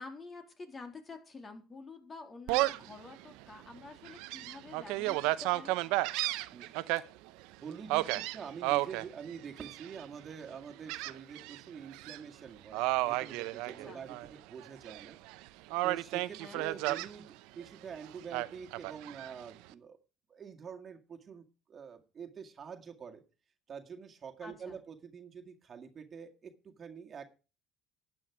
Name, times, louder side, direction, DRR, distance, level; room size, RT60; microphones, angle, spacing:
voice 1, 0.0-5.7 13.8-14.0 16.4-16.6 24.4-24.8, left 3 dB, 30° left, 5 dB, 3.4 m, -48 dB
Gull seagull, 2.5-2.9 3.4-3.5 4.0-7.0 7.9-9.0 9.6-10.0 10.9-11.6 11.9-12.2 12.7-14.3 14.6-15.3 15.7-17.1 18.3-19.3, right 19 dB, 75° right, 0.7 m, -32 dB
voice 2, 7.6-15.2 15.8-20.0 20.3-23.2 23.7-27.2, right 6 dB, 40° right, 4 dB, 1.9 m, -46 dB
12.0 x 8.9 x 4.8 m, 0.33 s
supercardioid pair, 75°, 0 cm